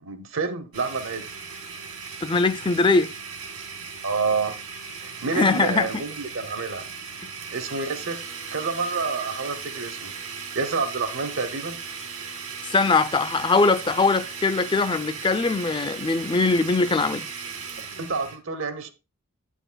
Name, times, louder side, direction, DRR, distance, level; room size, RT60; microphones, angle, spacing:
voice 1, 0.0-1.3 4.0-4.6 5.0-6.8 7.5-8.2 8.5-10.1 10.5-11.8 18.0-18.9, right 4 dB, 60° right, 0.9 m, -28 dB
Domestic sounds home sounds, 0.7-18.4, right 5 dB, 85° right, 2.1 m, -37 dB
voice 2, 2.2-3.1 5.3-5.9 12.7-17.2, left 3 dB, 20° left, 0.4 m, -21 dB
10.0 x 9.2 x 2.2 m
head